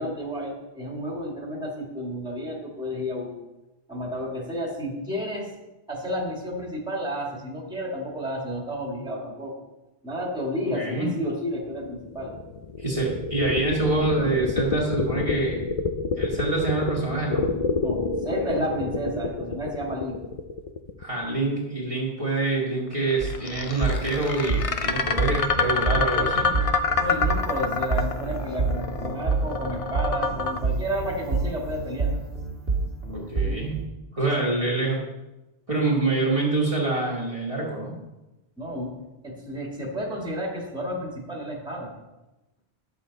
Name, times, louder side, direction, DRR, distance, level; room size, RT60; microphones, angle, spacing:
voice 1, 0.0-3.3 3.9-5.5 5.9-9.6 10.0-12.3 17.8-20.3 27.0-32.1 34.3-34.5 38.6-39.0 39.2-41.9, equal, 5° right, -2 dB, 1.8 m, -31 dB
voice 2, 10.7-11.1 12.8-15.6 16.1-17.5 21.0-26.5 33.1-33.8 34.1-35.0 35.7-37.9, right 2 dB, 30° right, -5 dB, 1.5 m, -26 dB
sound 1, 11.7-21.6 22.9-30.6, left 4 dB, 45° left, 0.5 m, -28 dB
sound 2, 23.2-33.9, right 3 dB, 65° right, 1.8 m, -29 dB
10.5 x 7.1 x 4.0 m, 1.0 s
omnidirectional pair, 1.1 m